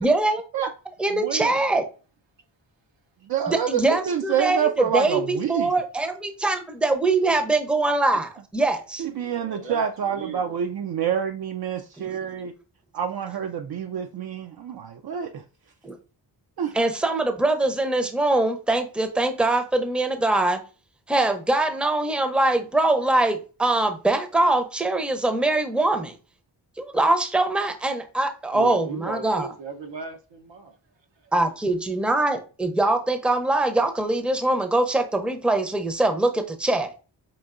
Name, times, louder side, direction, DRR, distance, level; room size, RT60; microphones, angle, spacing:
voice 1, 0.0-0.4 1.0-1.8 3.5-9.0 12.0-12.2 15.8-16.0 16.7-20.6 21.1-26.1 26.8-29.5 31.3-36.9, right 2 dB, ahead, 0.6 m, -23 dB
voice 2, 1.0-1.7 9.1-10.6 28.5-30.8 31.2-31.3, right 5 dB, 75° right, 0.9 m, -36 dB
voice 3, 3.3-5.7 9.0-12.5 12.9-15.4 16.6-16.7, right 8 dB, 60° right, 0.5 m, -27 dB
5.5 x 2.6 x 2.5 m
cardioid pair, 60°, 44 cm